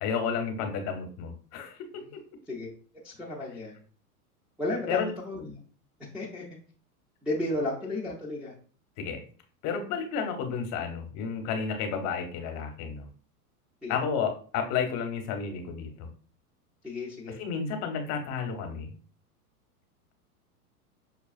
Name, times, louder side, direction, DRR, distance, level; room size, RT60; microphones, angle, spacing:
voice 1, 0.0-2.2 4.9-5.1 9.0-9.2 9.6-13.1 13.9-16.1 17.4-18.9, left 6 dB, 35° left, 5 dB, 0.8 m, -32 dB
voice 2, 3.0-3.8 4.6-5.6 6.1-6.4 7.2-8.5 13.8-14.0 16.8-17.4, left 2 dB, ahead, -7 dB, 0.4 m, -33 dB
5.6 x 2.3 x 2.4 m, 0.41 s
hypercardioid pair, 105°, 46 cm